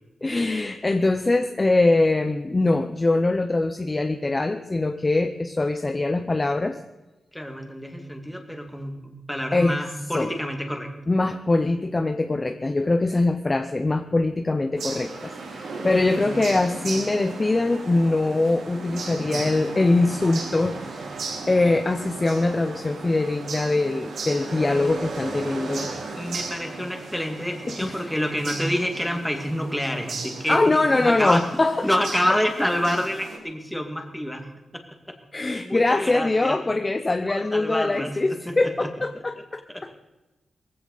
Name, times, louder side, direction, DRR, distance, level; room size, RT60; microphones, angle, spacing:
voice 1, 0.2-6.8 9.5-9.8 10.1-10.3 11.1-21.2 21.5-25.9 27.7-28.1 30.5-31.9 35.3-39.9, left 2 dB, 20° left, 7 dB, 0.7 m, -23 dB
voice 2, 7.3-9.0 9.3-10.9 15.9-16.4 19.0-19.5 24.7-24.9 26.2-31.5 31.8-35.2 35.6-36.6 37.3-38.9 39.7-39.8, equal, 5° left, 3 dB, 2.1 m, -28 dB
sound 1, 14.8-33.4, right 3 dB, 75° right, 3.9 m, -36 dB
21.5 x 15.5 x 4.1 m, 1.1 s
wide cardioid pair, 165°, 0 cm